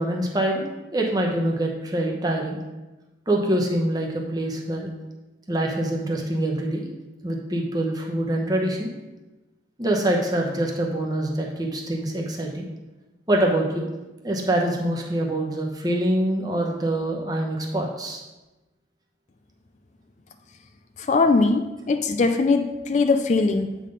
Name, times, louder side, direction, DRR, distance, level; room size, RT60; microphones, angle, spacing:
voice 1, 0.0-2.6 3.3-4.9 5.5-6.9 7.2-8.9 9.8-12.7 13.3-13.9 14.2-18.2, right 1 dB, 20° right, 0 dB, 0.9 m, -25 dB
voice 2, 21.1-23.8, left 3 dB, 40° left, 7 dB, 0.3 m, -21 dB
8.2 x 3.8 x 5.1 m, 1.1 s
head